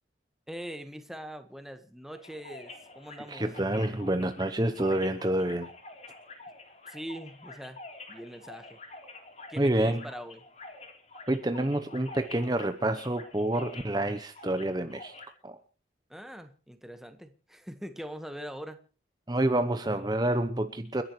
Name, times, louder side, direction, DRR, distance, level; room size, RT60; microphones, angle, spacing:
voice 1, 0.5-3.5 6.9-7.8 8.1-8.8 9.5-10.4 16.1-18.8, equal, ahead, 8 dB, 1.4 m, -42 dB
sound 1, 2.1-15.3, left 2 dB, 35° left, 3.6 m, -47 dB
voice 2, 3.3-5.7 9.6-10.0 11.3-15.1 15.4-15.6 19.3-21.0, right 1 dB, 20° right, 9 dB, 0.8 m, -28 dB
29.5 x 11.0 x 3.2 m, 0.36 s
head